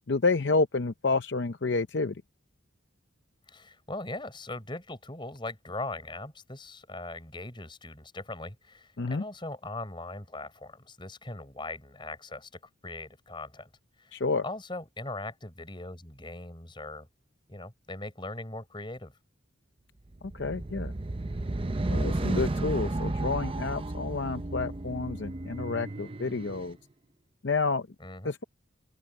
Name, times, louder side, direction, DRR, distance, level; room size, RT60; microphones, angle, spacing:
voice 1, 0.1-2.2 9.0-9.2 14.1-14.4 20.3-20.9 21.9-26.8 27.4-27.9 28.2-28.4, left 3 dB, 55° left, 0.6 m, -29 dB
voice 2, 3.5-13.7 14.0-17.1 17.5-19.1 28.0-28.3, left 2 dB, 25° left, 4.3 m, -40 dB
sound 1, 20.2-26.7, right 2 dB, 25° right, 0.6 m, -33 dB
open air
head